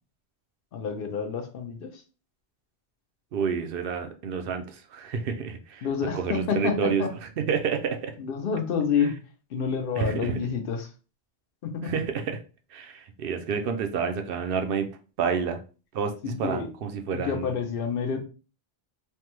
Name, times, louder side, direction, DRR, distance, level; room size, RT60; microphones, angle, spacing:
voice 1, 0.7-2.0 5.8-7.1 8.2-9.2 9.5-10.9 11.6-11.9 16.2-16.7 17.1-18.2, left 6 dB, 65° left, 5 dB, 0.7 m, -28 dB
voice 2, 3.3-5.9 6.1-7.1 7.4-8.1 10.0-10.3 11.8-12.4 12.7-14.9 15.2-15.6 15.9-17.5, right 6 dB, 65° right, 6 dB, 0.7 m, -29 dB
3.3 x 2.1 x 3.0 m, 0.35 s
omnidirectional pair, 1.1 m